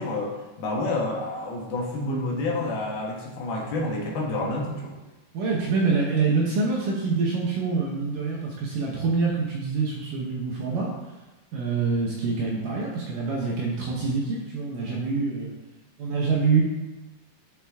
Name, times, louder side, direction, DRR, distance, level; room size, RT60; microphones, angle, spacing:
voice 1, 0.0-4.9, left 2 dB, 70° left, -2 dB, 3.1 m, -29 dB
voice 2, 5.3-10.9 11.5-15.5 16.0-16.6, right 4 dB, 70° right, -3 dB, 2.2 m, -25 dB
10.5 x 5.0 x 3.5 m, 1.1 s
omnidirectional pair, 4.7 m